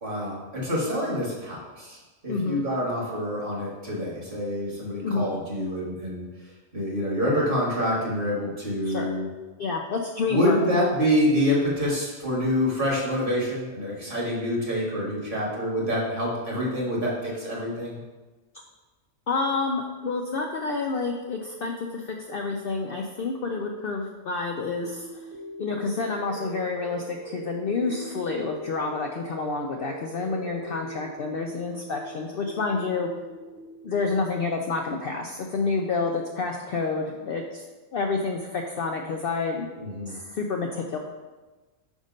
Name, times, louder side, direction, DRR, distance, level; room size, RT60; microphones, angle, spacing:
voice 1, 0.0-2.0 2.2-6.2 6.7-9.3 10.3-18.0 39.8-40.1, equal, 40° right, -4 dB, 1.7 m, -26 dB
voice 2, 2.3-2.6 5.0-5.3 8.8-9.1 9.6-10.8 19.3-25.1 25.6-33.1 33.8-37.6 37.9-39.7 40.1-41.0, left 4 dB, 60° left, 1 dB, 0.6 m, -29 dB
sound 1, 24.8-34.8, right 1 dB, 60° right, 1.0 m, -41 dB
5.4 x 3.6 x 5.1 m, 1.2 s
omnidirectional pair, 1.4 m